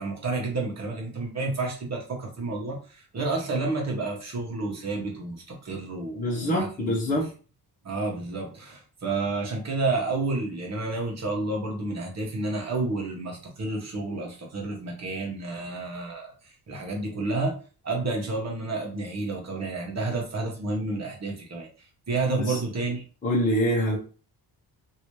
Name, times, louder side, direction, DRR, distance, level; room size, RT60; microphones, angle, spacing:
voice 1, 0.0-7.3 7.8-17.6 17.8-21.7 22.1-23.0, right 3 dB, 40° right, 0 dB, 1.3 m, -30 dB
voice 2, 6.2-7.3 22.4-22.6 23.2-24.0, equal, 20° left, -5 dB, 1.0 m, -25 dB
3.0 x 2.8 x 3.2 m, 0.37 s
cardioid pair, 105°, 40 cm